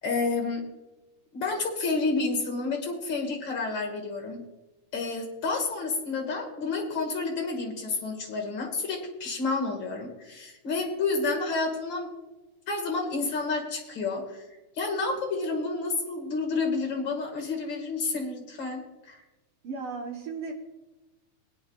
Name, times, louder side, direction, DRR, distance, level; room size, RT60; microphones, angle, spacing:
voice 1, 0.0-0.7 1.3-4.4 4.9-12.1 12.7-14.5 14.8-19.2, left 3 dB, 40° left, 2 dB, 2.2 m, -30 dB
voice 2, 19.6-20.6, right 4 dB, 55° right, 1 dB, 1.7 m, -35 dB
21.5 x 9.0 x 2.4 m, 1.1 s
omnidirectional pair, 3.5 m